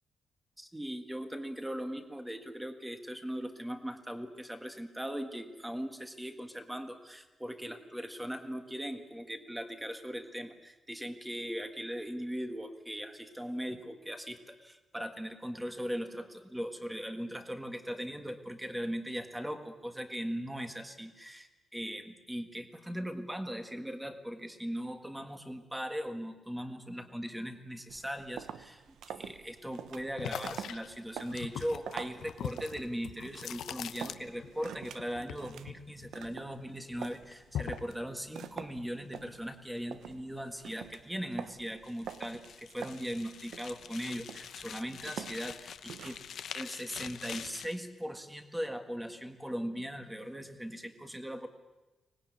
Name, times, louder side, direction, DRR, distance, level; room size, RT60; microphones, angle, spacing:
voice 1, 0.6-46.2 46.5-51.5, equal, 5° right, 7 dB, 1.6 m, -39 dB
sound 1, 27.9-46.4, right 8 dB, 80° right, 1.0 m, -47 dB
sound 2, 30.2-34.7 35.0-36.6 36.9-37.9, left 9 dB, 80° left, 1.0 m, -41 dB
sound 3, 41.8-47.8, left 8 dB, 55° left, 0.8 m, -46 dB
24.5 x 19.5 x 9.6 m, 1.1 s
wide cardioid pair, 180°, 0 cm